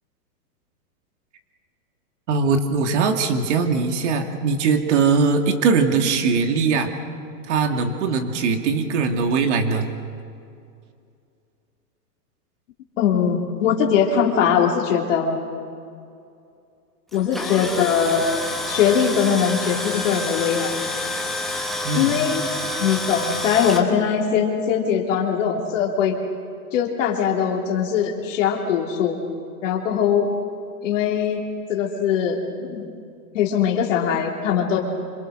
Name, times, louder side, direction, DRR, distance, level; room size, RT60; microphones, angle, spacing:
voice 1, 2.3-6.9 7.5-9.9 21.8-22.4, right 5 dB, 45° right, 5 dB, 2.6 m, -21 dB
voice 2, 13.0-15.4 17.1-18.2 18.7-20.7 21.9-22.4 22.8-26.2 26.7-29.2 29.6-30.3 30.8-31.4 31.7-32.9 33.3-34.8, left 7 dB, 50° left, -1 dB, 3.1 m, -21 dB
Tools, 17.1-23.8, left 1 dB, ahead, 1.0 m, -28 dB
26.5 x 26.0 x 6.4 m, 2.4 s
hypercardioid pair, 165°, 48 cm